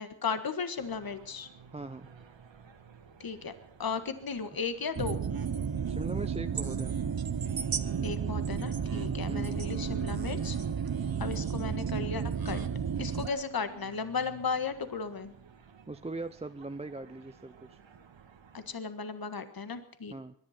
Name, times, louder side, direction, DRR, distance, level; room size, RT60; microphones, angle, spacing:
voice 1, 0.0-1.5 3.2-3.5 3.8-5.2 8.0-10.6 11.2-12.6 13.0-15.3 18.5-20.1, left 5 dB, 50° left, 10 dB, 1.6 m, -35 dB
sound 1, 0.8-18.7, right 6 dB, 70° right, 1.8 m, -53 dB
voice 2, 1.7-2.1 5.9-7.0 9.3-9.7 15.9-17.8 20.1-20.3, right 2 dB, 15° right, 10 dB, 0.6 m, -40 dB
sound 2, 5.0-13.3, right 7 dB, 50° right, 1.1 m, -32 dB
22.5 x 11.0 x 5.9 m, 0.62 s
cardioid pair, 75°, 47 cm